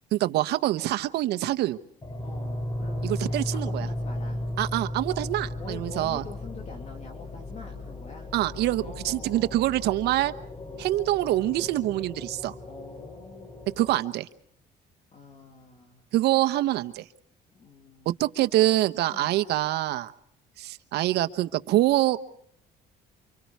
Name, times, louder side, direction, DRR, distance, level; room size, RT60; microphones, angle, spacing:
voice 1, 0.1-1.8 3.0-3.9 4.6-6.2 8.3-10.3 10.8-12.5 13.8-14.3 16.1-17.0 18.2-20.1 20.6-22.2, right 15 dB, 80° right, 11 dB, 1.1 m, -25 dB
sound 1, 2.0-14.0, left 1 dB, 25° left, 3.7 m, -35 dB
voice 2, 2.2-4.4 5.6-8.3 8.8-9.7 10.5-10.9 12.7-13.8 15.1-16.1 17.5-18.2 19.1-19.3, left 4 dB, 40° left, 3 dB, 2.9 m, -46 dB
29.0 x 25.5 x 4.7 m, 0.66 s
cardioid pair, 110°, 17 cm